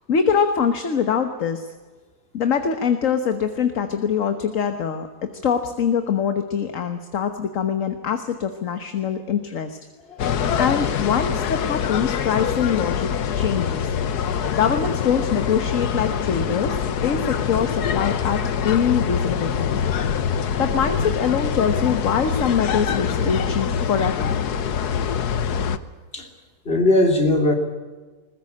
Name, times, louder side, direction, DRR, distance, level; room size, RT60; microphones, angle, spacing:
voice 1, 0.0-1.7 2.3-5.1 5.4-9.8 10.2-13.1 13.4-13.9 14.5-19.8 20.3-24.4, left 7 dB, 55° left, 7 dB, 1.6 m, -24 dB
sound 1, 10.2-25.8, left 7 dB, 90° left, 1.6 m, -24 dB
voice 2, 26.6-27.5, left 1 dB, 40° left, 3 dB, 3.3 m, -18 dB
21.0 x 20.5 x 8.5 m, 1.3 s
omnidirectional pair, 1.6 m